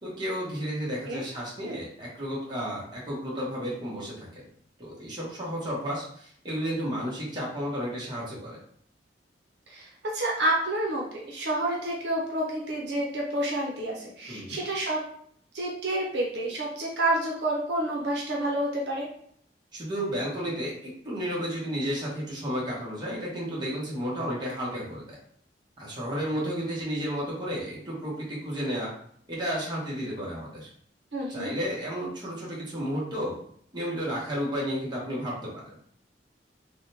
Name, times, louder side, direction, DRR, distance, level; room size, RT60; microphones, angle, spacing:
voice 1, 0.0-4.4 4.8-8.6 14.3-14.6 19.7-25.2 25.8-28.9 29.3-30.7 31.3-33.3 33.7-35.6, equal, 25° right, -6 dB, 1.0 m, -32 dB
voice 2, 9.7-15.0 15.5-19.1 31.1-31.5, right 1 dB, 70° right, -2 dB, 0.7 m, -29 dB
3.5 x 2.2 x 2.8 m, 0.63 s
head